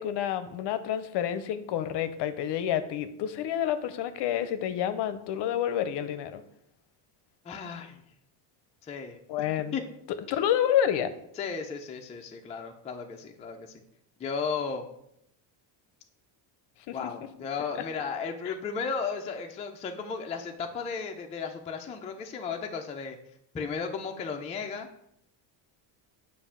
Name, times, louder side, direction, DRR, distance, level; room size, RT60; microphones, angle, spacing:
voice 1, 0.0-6.4 9.3-9.8 10.3-11.1 16.9-17.0 18.4-18.5, left 10 dB, 55° left, 11 dB, 0.6 m, -29 dB
voice 2, 7.4-8.0 8.8-9.4 9.7-9.8 11.4-13.8 14.2-14.9 16.9-23.2 23.5-24.9, left 5 dB, 15° left, 3 dB, 0.3 m, -35 dB
7.1 x 2.6 x 5.5 m, 0.76 s
cardioid pair, 130°, 49 cm